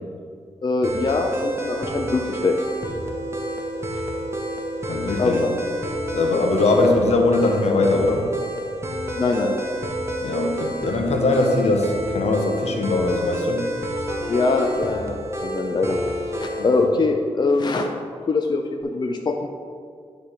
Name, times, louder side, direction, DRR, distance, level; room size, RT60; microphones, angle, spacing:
voice 1, 0.6-2.6 3.9-4.0 5.2-5.5 9.2-9.6 14.3-16.0 16.4-17.9 18.3-19.5, left 3 dB, 40° left, 3 dB, 0.5 m, -23 dB
sound 1, 0.8-16.9, equal, 25° right, 1.1 m, -29 dB
voice 2, 4.9-5.4 6.1-8.2 10.2-13.6, left 2 dB, 70° left, 2 dB, 1.0 m, -21 dB
10.0 x 3.4 x 5.7 m, 2.1 s
cardioid pair, 75°, 11 cm